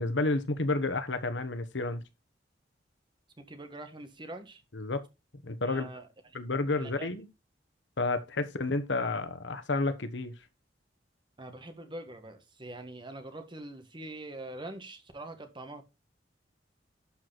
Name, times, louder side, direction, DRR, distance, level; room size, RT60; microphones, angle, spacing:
voice 1, 0.0-2.0 4.7-5.0 5.4-5.9 6.3-7.3 8.0-10.3, left 2 dB, 85° left, 1.2 m, -30 dB
voice 2, 3.4-4.6 5.6-6.1 6.8-7.1 11.4-15.8, right 2 dB, 25° right, 1.6 m, -43 dB
11.5 x 4.7 x 4.0 m
head